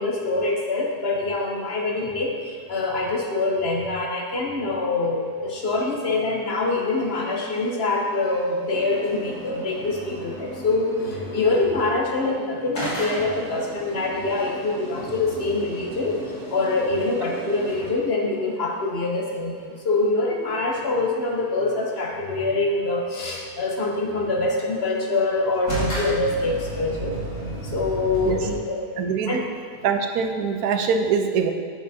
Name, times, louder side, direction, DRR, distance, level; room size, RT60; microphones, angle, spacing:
voice 1, 0.0-16.2 16.5-27.1 27.6-28.9 29.3-29.4, left 2 dB, 50° left, -1 dB, 0.9 m, -25 dB
sound 1, 8.7-11.8 12.7-18.0 25.7-28.6, right 1 dB, 80° left, 2.5 m, -34 dB
voice 2, 29.0-29.4 29.8-31.5, right 6 dB, 75° right, 6 dB, 1.1 m, -23 dB
8.4 x 6.9 x 2.7 m, 2.2 s
omnidirectional pair, 1.6 m